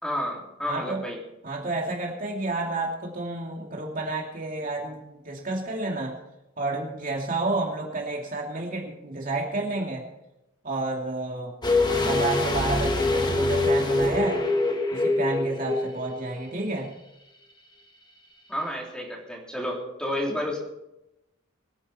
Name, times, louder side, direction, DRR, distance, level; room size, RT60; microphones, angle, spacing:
voice 1, 0.0-1.2 18.5-20.6, left 1 dB, 5° left, -2 dB, 3.4 m, -31 dB
voice 2, 0.6-1.0 1.4-6.1 6.6-10.0 10.6-14.4 14.9-16.9, right 2 dB, 40° right, -1 dB, 2.6 m, -30 dB
sound 1, 11.6-16.5 16.7-16.8, left 2 dB, 20° left, 1.4 m, -24 dB
23.5 x 10.0 x 4.3 m, 0.90 s
head